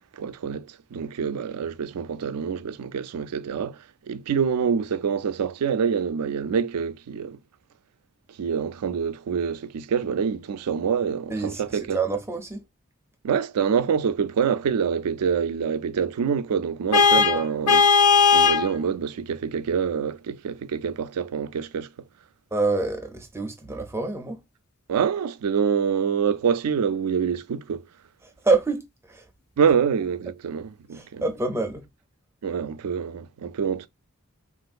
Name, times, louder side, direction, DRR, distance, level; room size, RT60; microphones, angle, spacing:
voice 1, 0.1-7.4 8.4-12.0 13.2-17.8 18.3-21.9 24.9-27.8 29.6-31.2 32.4-33.9, right 7 dB, 90° right, 0.4 m, -26 dB
voice 2, 11.3-12.6 17.1-17.2 22.5-24.4 28.2-29.3 30.9-31.8, right 3 dB, 10° right, 0.4 m, -27 dB
Vehicle horn car horn honking, 16.9-18.7, left 5 dB, 85° left, 0.6 m, -17 dB
3.7 x 2.5 x 2.4 m
head